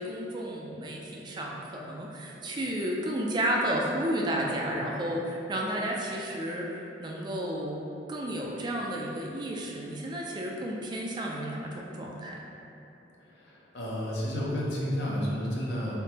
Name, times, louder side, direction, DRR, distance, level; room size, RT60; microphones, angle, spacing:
voice 1, 0.0-12.4, right 1 dB, 25° right, -2 dB, 0.3 m, -32 dB
voice 2, 13.2-15.9, equal, 65° left, -5 dB, 0.7 m, -31 dB
3.6 x 3.5 x 2.9 m, 3.0 s
head